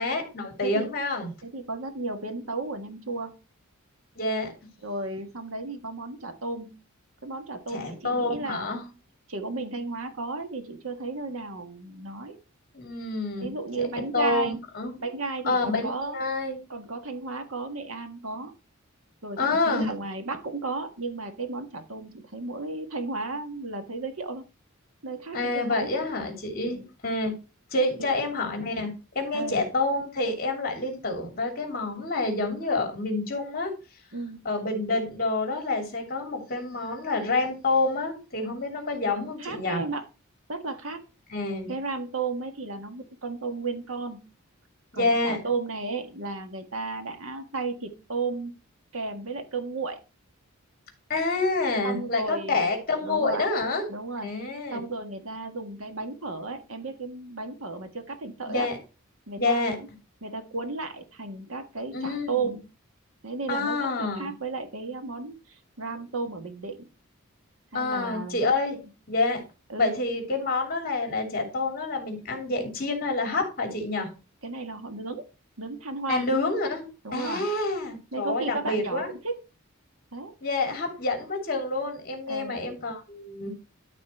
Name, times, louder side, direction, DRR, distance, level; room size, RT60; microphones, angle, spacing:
voice 1, 0.0-1.3 4.1-4.5 7.7-8.8 12.7-13.5 14.1-15.0 15.4-16.6 19.4-19.9 25.3-27.3 27.7-33.7 34.4-39.8 41.3-41.7 44.9-45.4 51.1-53.8 54.2-54.8 58.5-58.8 59.4-59.7 61.9-62.5 63.5-64.3 67.7-68.8 69.1-69.4 69.8-74.1 76.1-76.9 77.1-79.1 80.4-83.5, left 3 dB, 45° left, 3 dB, 3.0 m, -28 dB
voice 2, 1.4-3.3 4.8-6.7 7.2-8.8 9.3-12.4 13.4-14.6 15.0-16.2 16.7-18.5 19.2-24.4 25.0-25.9 26.7-26.8 28.0-28.1 29.3-29.7 34.1-34.4 39.4-40.0 40.5-41.0 41.7-44.2 44.9-48.6 48.9-50.0 51.8-52.7 53.0-53.4 53.9-54.3 54.7-58.7 59.3-59.8 60.2-62.6 63.2-66.9 67.7-68.5 69.7-70.0 74.4-75.2 75.6-76.3 77.0-77.5 78.1-79.4 80.1-80.3 82.3-82.6, right 3 dB, 70° right, 6 dB, 1.6 m, -34 dB
12.5 x 4.2 x 4.5 m, 0.31 s
head